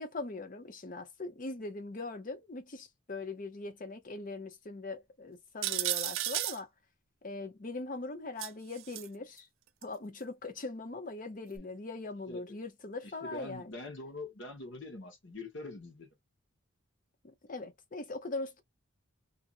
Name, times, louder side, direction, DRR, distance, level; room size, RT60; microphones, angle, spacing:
voice 1, 0.0-6.7 7.2-9.5 9.8-13.7 17.2-18.6, left 3 dB, 40° left, 0.6 m, -41 dB
sound 1, 5.6-6.6 8.4-9.1 9.8-9.9 11.6-11.7, right 14 dB, 70° right, 0.4 m, -33 dB
voice 2, 13.2-16.1, left 2 dB, 60° left, 1.1 m, -44 dB
2.7 x 2.5 x 2.5 m
head